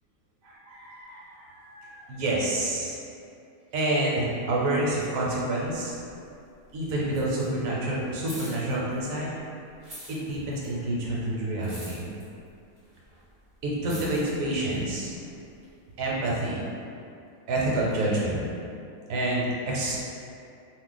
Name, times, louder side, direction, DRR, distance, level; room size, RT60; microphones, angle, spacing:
voice 1, 0.4-3.0 3.7-6.0 6.7-9.3 10.1-12.1 13.6-15.1 16.0-16.7 17.5-18.4 19.1-20.0, right 1 dB, 70° right, -5 dB, 1.0 m, -28 dB
sound 1, 5.6-6.6 6.9-9.4 9.7-15.7 16.3-16.4, equal, 25° right, 0.5 m, -46 dB
2.5 x 2.1 x 3.8 m, 2.6 s
omnidirectional pair, 1.5 m